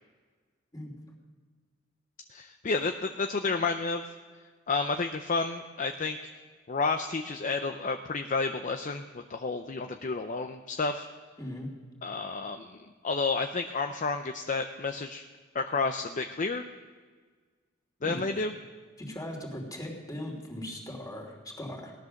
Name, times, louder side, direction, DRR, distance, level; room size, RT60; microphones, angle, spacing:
voice 1, 2.3-4.1 4.7-6.2 6.7-11.1 12.0-15.2 15.5-16.7 18.0-18.5, left 4 dB, 40° left, 6 dB, 0.6 m, -31 dB
voice 2, 11.4-11.7 18.0-18.2 19.0-21.9, left 1 dB, 20° left, -1 dB, 3.0 m, -39 dB
17.5 x 11.0 x 6.5 m, 1.5 s
head